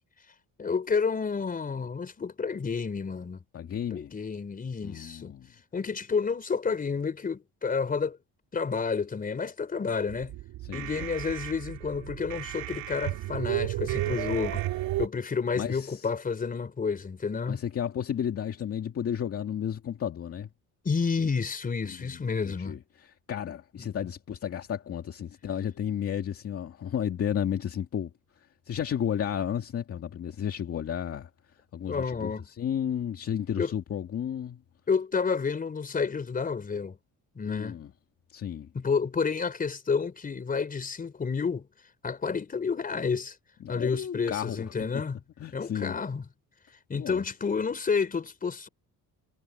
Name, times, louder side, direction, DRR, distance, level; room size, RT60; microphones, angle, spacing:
voice 1, 0.6-3.4 3.9-5.3 5.7-8.2 8.5-10.4 10.7-14.6 15.0-17.6 20.8-22.8 23.8-23.9 31.9-32.5 33.6-33.7 34.9-37.0 37.4-37.8 38.7-41.7 42.0-43.3 43.7-45.2 45.5-46.2 46.9-48.7, left 5 dB, 25° left, 4.4 m, -30 dB
voice 2, 3.5-4.1 4.8-5.5 10.7-10.9 15.5-16.1 17.5-20.5 21.8-28.1 28.7-31.3 31.7-34.6 37.5-37.9 38.3-38.7 43.6-44.6 45.4-45.9 46.9-47.2, left 9 dB, 40° left, 2.3 m, -33 dB
sound 1, 10.1-15.1, right 16 dB, 90° right, 3.5 m, -33 dB
cardioid pair, 145°, 35 cm